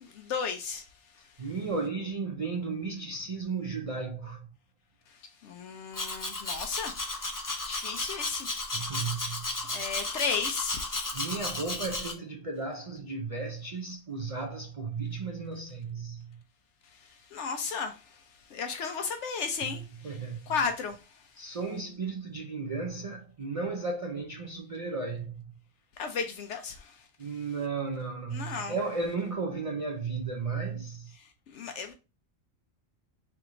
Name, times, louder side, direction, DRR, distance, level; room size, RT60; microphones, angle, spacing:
voice 1, 0.0-0.8 5.4-7.2 7.6-8.5 9.7-11.0 17.3-18.0 18.5-20.2 20.5-21.0 26.0-26.9 28.3-28.8 31.5-31.9, left 5 dB, 70° left, 0.8 m, -34 dB
voice 2, 1.4-4.5 8.7-9.7 11.1-16.4 19.6-20.4 21.4-25.5 27.2-31.1, right 4 dB, 65° right, 0.3 m, -34 dB
Domestic sounds home sounds, 5.9-12.1, left 2 dB, 25° left, 0.4 m, -34 dB
3.4 x 3.0 x 3.7 m
omnidirectional pair, 1.3 m